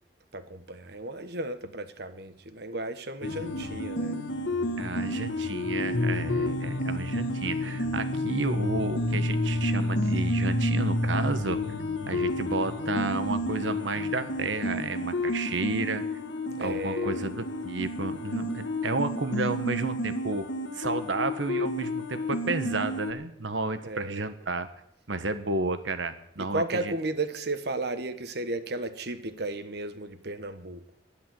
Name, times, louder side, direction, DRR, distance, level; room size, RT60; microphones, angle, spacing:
voice 1, 0.3-4.2 16.6-17.2 23.8-24.2 26.4-30.8, right 2 dB, 60° right, 10 dB, 1.3 m, -34 dB
sound 1, 3.2-23.1, left 1 dB, 85° left, 1.8 m, -30 dB
voice 2, 4.8-11.6 12.1-16.0 16.6-20.5 20.7-24.7 25.1-26.9, right 3 dB, 90° right, 10 dB, 1.4 m, -32 dB
12.0 x 11.0 x 7.7 m, 0.73 s
head